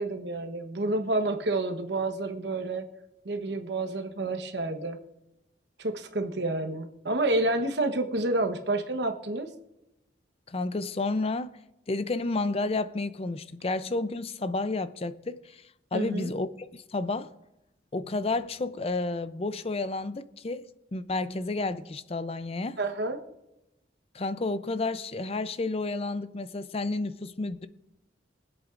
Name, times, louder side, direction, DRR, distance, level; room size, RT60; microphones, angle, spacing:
voice 1, 0.0-2.9 3.2-5.0 5.8-9.5 15.9-16.3 22.8-23.2, right 2 dB, 70° right, 1.1 m, -29 dB
voice 2, 10.5-11.6 11.9-15.6 15.9-16.5 16.7-17.3 17.9-20.7 20.9-22.8 24.1-27.7, left 3 dB, 35° left, 0.5 m, -31 dB
23.5 x 8.2 x 2.5 m
head